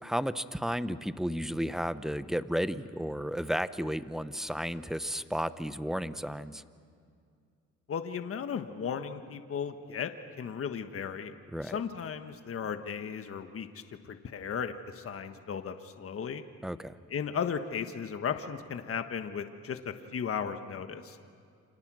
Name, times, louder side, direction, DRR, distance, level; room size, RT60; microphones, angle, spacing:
voice 1, 0.0-6.6 11.5-11.8 16.6-17.0, equal, ahead, 13 dB, 0.9 m, -33 dB
voice 2, 7.9-10.1 10.4-11.3 11.7-13.7 14.0-16.4 17.1-21.2, left 7 dB, 50° left, 7 dB, 1.4 m, -35 dB
29.0 x 27.0 x 6.3 m, 2.3 s
cardioid pair, 90°, 30 cm